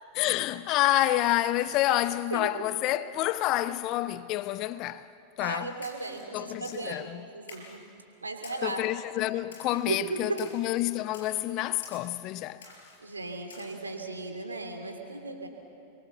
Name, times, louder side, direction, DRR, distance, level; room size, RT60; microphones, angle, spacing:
voice 1, 0.1-5.1 5.4-5.8 6.3-7.3 8.6-12.6, left 15 dB, 40° left, 0.6 m, -28 dB
voice 2, 5.4-7.1 7.3-7.8 8.2-8.8 9.9-10.4 13.0-15.5, right 3 dB, 80° right, 3.0 m, -35 dB
Splash splatter, 5.8-6.2 6.6-7.0 7.5-7.8 8.4-8.8 9.5-9.8 10.4-10.7 11.1-11.4 11.8-12.2 12.6-13.0 13.5-13.7, left 4 dB, 65° left, 5.0 m, -49 dB
29.5 x 23.0 x 7.0 m
figure-of-eight pair, 90°, 0 cm